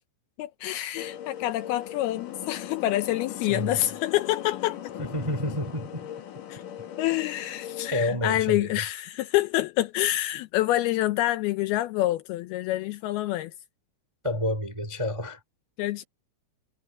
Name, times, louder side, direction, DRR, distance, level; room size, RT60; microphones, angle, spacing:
voice 1, 0.4-4.8 6.5-6.6 7.0-13.5 15.8-16.0, left 15 dB, 85° left, 2.2 m, -27 dB
sound 1, 0.9-7.9, left 10 dB, 55° left, 2.8 m, -39 dB
voice 2, 5.0-6.1 7.9-8.7 14.2-15.4, left 1 dB, 30° right, 0.5 m, -29 dB
omnidirectional pair, 5.4 m